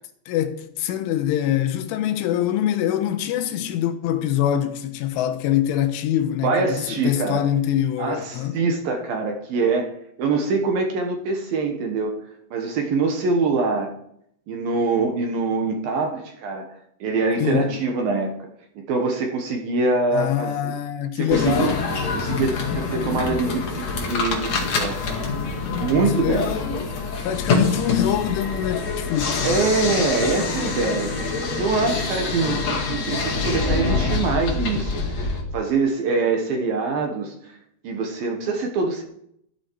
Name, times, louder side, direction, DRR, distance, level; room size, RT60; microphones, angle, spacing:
voice 1, 0.3-8.6 17.4-17.7 20.1-21.8 26.0-26.7 27.2-29.6, left 11 dB, 90° left, 3.5 m, -24 dB
voice 2, 6.4-7.4 8.0-9.9 10.2-12.2 12.5-13.9 14.5-16.7 17.0-18.3 18.8-20.7 21.1-21.7 22.1-25.2 25.8-26.5 29.4-37.6 37.8-39.0, right 4 dB, 65° right, 2.6 m, -24 dB
sound 1, 21.3-35.4, left 4 dB, 45° left, 2.6 m, -25 dB
14.0 x 11.5 x 4.7 m
omnidirectional pair, 5.5 m